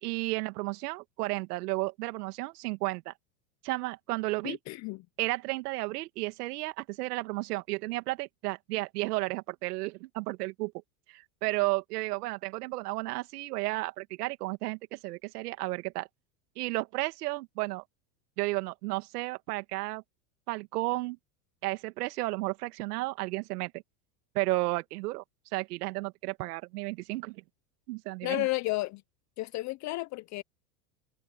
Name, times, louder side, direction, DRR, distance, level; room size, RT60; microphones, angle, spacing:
voice 1, 0.0-3.1 3.6-4.6 5.2-10.7 11.1-16.1 16.6-17.8 18.4-20.0 20.5-21.2 21.6-23.7 24.3-25.2 25.5-27.4 27.9-28.5, right 21 dB, 70° right, 2.2 m, -33 dB
voice 2, 4.4-5.1 28.2-29.0 29.4-30.4, left 20 dB, 35° left, 0.6 m, -32 dB
supercardioid pair, 115°, 48 cm